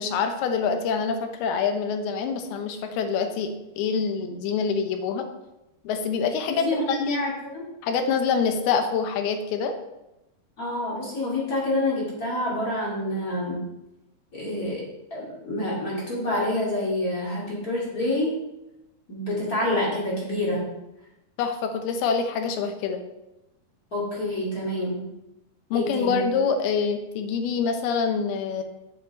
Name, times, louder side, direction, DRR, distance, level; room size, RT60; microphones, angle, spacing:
voice 1, 0.0-5.3 5.8-7.3 7.8-9.7 21.4-23.0 25.7-28.6, left 5 dB, 80° left, 6 dB, 2.8 m, -26 dB
voice 2, 6.5-7.7 10.6-13.6 14.3-14.9 15.1-18.3 19.1-20.7 23.9-25.1 25.7-26.3, left 1 dB, 25° left, -5 dB, 2.3 m, -27 dB
7.6 x 7.4 x 4.3 m, 0.93 s
omnidirectional pair, 4.6 m